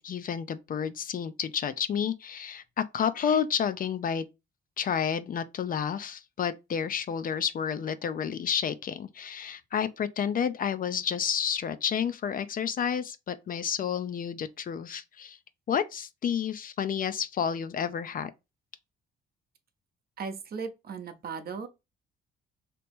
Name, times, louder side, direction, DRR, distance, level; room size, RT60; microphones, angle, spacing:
voice 1, 0.0-4.3 4.8-15.4 15.7-18.3, left 7 dB, 45° left, 0.4 m, -30 dB
voice 2, 20.2-21.7, right 5 dB, 50° right, 0.7 m, -37 dB
2.9 x 2.9 x 3.5 m
cardioid pair, 90°, 20 cm